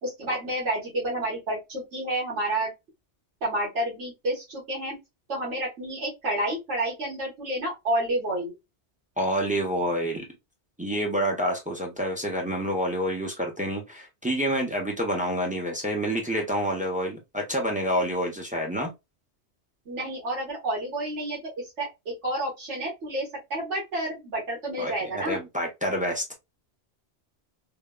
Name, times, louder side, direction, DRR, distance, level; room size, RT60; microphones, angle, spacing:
voice 1, 0.0-2.7 3.4-5.0 5.3-8.5 19.9-25.4, right 1 dB, 90° right, 1.6 m, -30 dB
voice 2, 9.2-10.2 10.8-18.9 24.8-26.3, equal, 10° right, 0.5 m, -28 dB
3.5 x 2.1 x 2.3 m
omnidirectional pair, 1.2 m